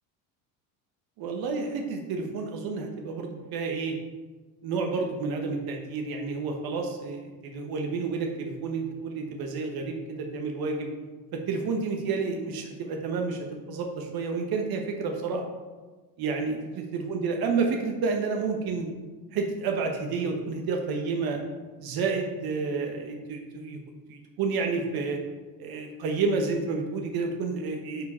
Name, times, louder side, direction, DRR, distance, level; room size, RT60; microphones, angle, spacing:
voice 1, 1.2-3.9 4.6-10.9 11.3-15.4 16.2-16.6 16.9-18.9 19.3-21.4 21.8-23.8 24.1-25.2 25.6-28.1, right 4 dB, 55° right, 2 dB, 1.2 m, -30 dB
9.3 x 4.7 x 4.4 m, 1.3 s
supercardioid pair, 110°, 43 cm